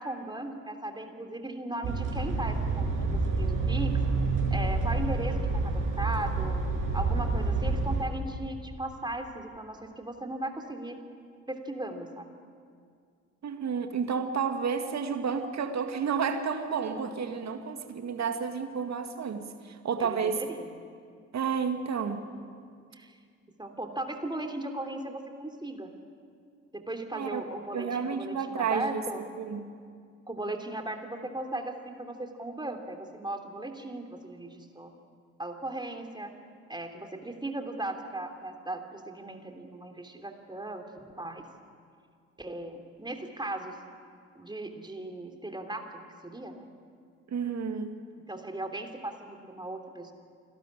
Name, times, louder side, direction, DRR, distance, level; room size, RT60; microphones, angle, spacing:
voice 1, 0.0-4.0 4.5-5.4 5.7-6.6 6.9-11.0 11.5-12.4 20.0-20.7 22.9-23.2 23.6-25.9 26.7-29.2 30.3-34.9 35.4-36.3 36.7-41.5 42.4-43.8 44.3-46.7 48.3-50.1, right 2 dB, 10° right, 4 dB, 3.3 m, -37 dB
sound 1, 1.8-8.0, right 3 dB, 65° right, 5.9 m, -28 dB
voice 2, 13.4-20.4 21.3-22.3 27.1-27.4 27.7-29.0 29.3-29.6 47.3-48.1, right 6 dB, 50° right, 6 dB, 2.2 m, -31 dB
28.5 x 12.5 x 10.0 m, 2.2 s
hypercardioid pair, 50°, 35 cm